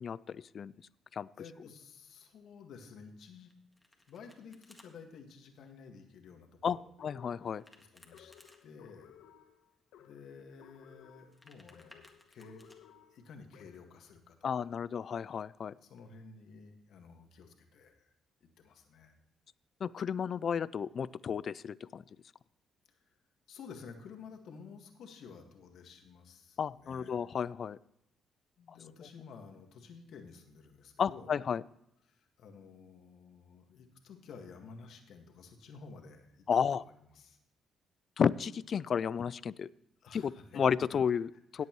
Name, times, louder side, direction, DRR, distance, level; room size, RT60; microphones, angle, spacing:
voice 1, 0.0-0.7 1.1-1.3 6.6-7.6 14.4-15.7 19.8-22.0 26.6-27.8 28.7-28.8 31.0-31.6 36.5-36.8 38.2-39.7 40.1-41.6, left 7 dB, 50° left, 20 dB, 0.3 m, -32 dB
voice 2, 1.4-3.5 4.1-6.9 7.8-8.3 8.6-9.1 10.0-12.6 13.1-14.7 15.8-18.1 18.4-19.1 22.9-23.2 23.5-27.1 28.6-31.4 32.0-36.5 36.8-37.4 40.0-40.6 41.6-41.7, left 5 dB, 75° left, 4 dB, 1.8 m, -52 dB
Domestic sounds home sounds, 3.5-4.9 7.4-8.6 11.1-12.8, left 1 dB, 10° left, 1.8 m, -61 dB
sound 1, 7.0-14.0, left 9 dB, 90° left, 1.1 m, -59 dB
17.5 x 8.2 x 3.1 m, 0.81 s
cardioid pair, 90°, 0 cm